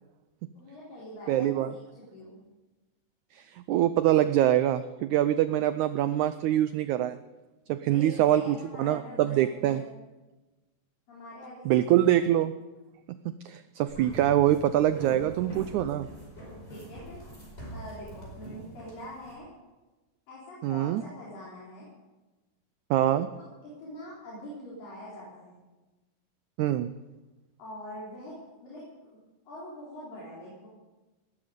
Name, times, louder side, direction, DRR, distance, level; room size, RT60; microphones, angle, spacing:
voice 1, 0.5-2.4 7.8-9.9 11.1-12.2 16.7-17.2 17.7-19.5 20.3-21.9 23.2-25.6 27.6-29.2 29.5-30.7, left 1 dB, 70° left, -7 dB, 5.8 m, -44 dB
voice 2, 1.3-1.7 3.3-7.2 7.7-9.8 11.7-12.5 13.1-16.1 20.6-21.0 22.9-23.3 26.6-26.9, right 12 dB, 90° right, 12 dB, 1.7 m, -24 dB
sound 1, 13.9-19.3, right 1 dB, 15° left, 5.2 m, -44 dB
19.5 x 13.0 x 5.2 m, 1.1 s
omnidirectional pair, 4.1 m